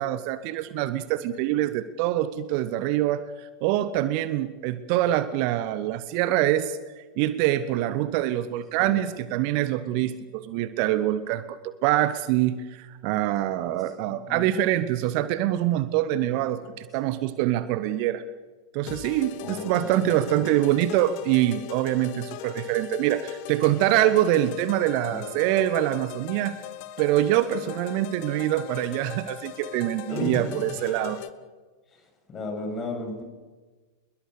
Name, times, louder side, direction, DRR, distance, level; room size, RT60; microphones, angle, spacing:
voice 1, 0.0-6.8 7.2-18.2 18.7-26.5 27.0-31.2, right 13 dB, 45° right, 14 dB, 1.2 m, -25 dB
voice 2, 14.1-14.5 19.4-20.4 25.1-25.2 30.1-30.4 31.9-32.0 32.3-33.2, left 2 dB, 25° left, 4 dB, 7.8 m, -34 dB
sound 1, 18.9-31.3, left 13 dB, 45° left, 1.4 m, -40 dB
27.0 x 22.0 x 6.8 m, 1.3 s
figure-of-eight pair, 90°, 0 cm